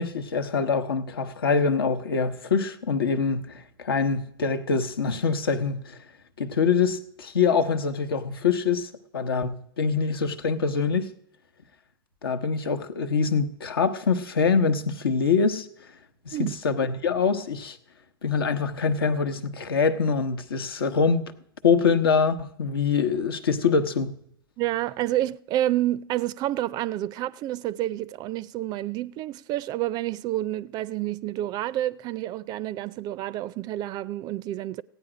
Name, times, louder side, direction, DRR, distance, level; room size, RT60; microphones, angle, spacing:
voice 1, 0.0-6.0 6.4-11.1 12.2-15.7 16.3-17.8 18.2-21.3 21.6-24.2, left 5 dB, 75° left, 0.9 m, -24 dB
voice 2, 24.6-34.8, right 14 dB, 35° right, 0.4 m, -29 dB
15.5 x 9.1 x 4.9 m
hypercardioid pair, 100°, 12 cm